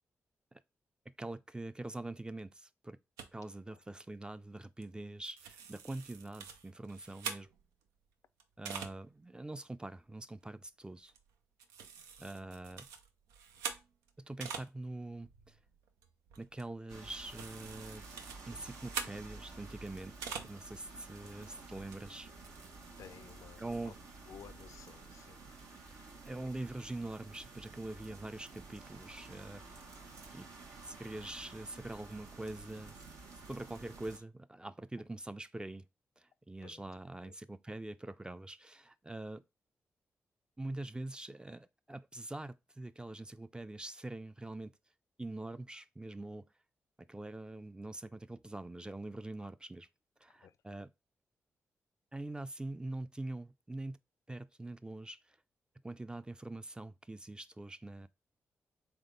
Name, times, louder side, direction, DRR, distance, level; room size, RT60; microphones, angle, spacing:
voice 1, 1.2-3.0 3.3-7.5 8.6-11.1 12.2-12.9 14.2-15.6 16.4-18.0 18.5-22.3 23.6-24.0 26.3-29.9 30.3-30.5 30.9-33.0 33.5-35.9 36.2-39.4 40.6-44.7 45.2-46.5 47.0-49.9 50.2-50.9 52.1-54.0 54.3-55.4 55.8-58.1, right 2 dB, 15° right, 0.4 m, -44 dB
sound 1, 3.2-3.3 4.8-5.0 5.2-7.8 8.4-9.0 9.5-9.6 9.9-10.2 11.1-11.3 11.6-14.7 15.0-20.6 21.0-21.1 21.9-22.0 22.2-22.7, right 6 dB, 90° right, 0.5 m, -45 dB
Rain Ambiance, 16.9-34.2, right 3 dB, 75° right, 1.0 m, -52 dB
voice 2, 23.0-23.9 24.3-25.4 36.6-36.8 37.2-37.3 50.4-50.5, left 8 dB, 70° left, 0.4 m, -54 dB
3.6 x 3.5 x 3.8 m
supercardioid pair, 40°, 6 cm